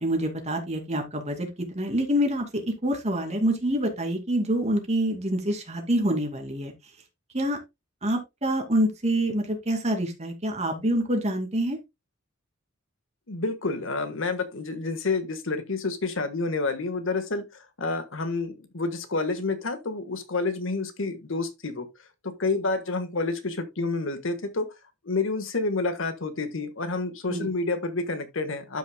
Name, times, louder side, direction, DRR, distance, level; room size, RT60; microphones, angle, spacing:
voice 1, 0.0-6.7 7.3-7.6 8.0-11.8 27.3-27.5, right 1 dB, 35° right, 2.5 m, -26 dB
voice 2, 13.3-21.9 22.4-24.7 25.0-28.8, left 3 dB, 70° left, 1.4 m, -29 dB
12.0 x 6.3 x 2.2 m
head